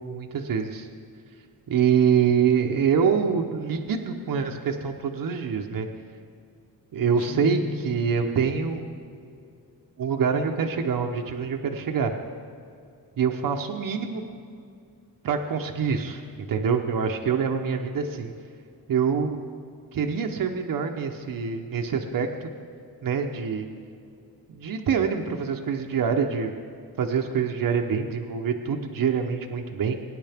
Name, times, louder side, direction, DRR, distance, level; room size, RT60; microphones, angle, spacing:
voice 1, 0.0-0.9 1.7-5.9 6.9-8.9 10.0-12.1 13.2-14.2 15.2-18.3 18.9-19.4 19.9-22.5 23.0-23.7 24.5-26.5 27.0-29.9, right 6 dB, 65° right, 3 dB, 0.9 m, -25 dB
Guitar, 7.2-8.3, left 6 dB, 40° left, 1.2 m, -35 dB
21.0 x 9.9 x 3.5 m, 2.5 s
wide cardioid pair, 120°, 36 cm